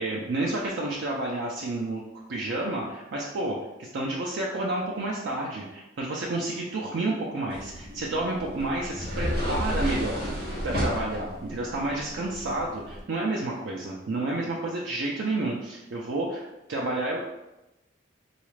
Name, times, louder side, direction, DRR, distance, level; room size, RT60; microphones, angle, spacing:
voice 1, 0.0-2.0 2.3-10.3 10.6-17.2, right 2 dB, 90° right, -3 dB, 0.5 m, -30 dB
sound 1, 7.5-13.0, equal, 55° right, 1.0 m, -32 dB
4.0 x 2.4 x 3.1 m, 0.98 s
head